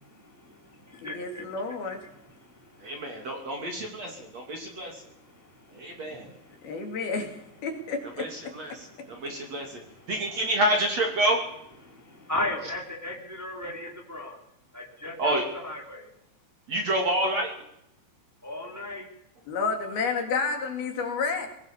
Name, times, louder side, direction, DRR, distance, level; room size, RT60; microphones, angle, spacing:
voice 1, 0.0-1.8 2.1-7.0 8.7-10.3 11.8-14.4 14.7-16.1 18.4-19.1, left 2 dB, 5° right, 1 dB, 3.2 m, -39 dB
voice 2, 1.0-2.0 6.6-8.8 19.5-21.5, left 4 dB, 55° left, 4 dB, 4.3 m, -31 dB
voice 3, 2.8-5.0 5.7-6.3 8.2-8.7 9.1-9.8 10.1-11.4 15.2-15.4 16.7-17.5, right 1 dB, 40° right, 2 dB, 3.7 m, -28 dB
21.5 x 19.0 x 7.2 m, 0.79 s
omnidirectional pair, 5.4 m